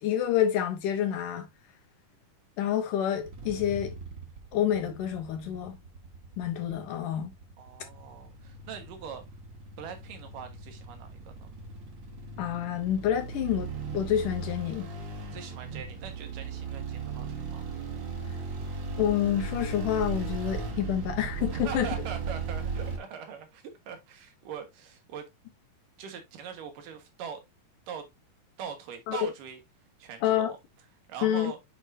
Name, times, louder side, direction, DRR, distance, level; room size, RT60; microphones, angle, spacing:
voice 1, 0.0-1.5 2.6-3.9 4.5-5.8 6.4-7.3 12.4-14.9 19.0-21.9 29.1-29.2 30.2-30.5 31.2-31.5, left 10 dB, 75° left, 2.6 m, -28 dB
sound 1, 3.2-23.0, right 4 dB, 50° right, 1.4 m, -37 dB
voice 2, 7.6-9.2 9.8-11.5 15.3-17.7 21.5-25.2 26.0-27.4 27.9-28.1 28.6-29.6 30.0-30.6 31.1-31.6, right 7 dB, 80° right, 3.0 m, -42 dB
8.0 x 4.9 x 2.6 m
omnidirectional pair, 3.9 m